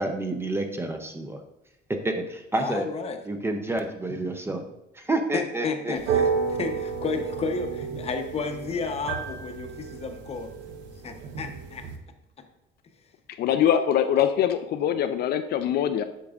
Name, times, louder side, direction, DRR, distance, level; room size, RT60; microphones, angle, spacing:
voice 1, 0.0-1.4 2.0-2.9 3.3-4.6 4.9-6.2, right 2 dB, 15° right, 4 dB, 0.5 m, -29 dB
voice 2, 2.6-3.2 5.3-10.5 11.0-11.8 13.6-13.9, left 4 dB, 35° left, 6 dB, 0.7 m, -32 dB
sound 1, 6.0-12.0, right 6 dB, 85° right, 0.9 m, -31 dB
voice 3, 13.4-16.0, left 9 dB, 55° left, 8 dB, 0.4 m, -23 dB
8.5 x 6.1 x 2.4 m, 0.90 s
cardioid pair, 145°, 19 cm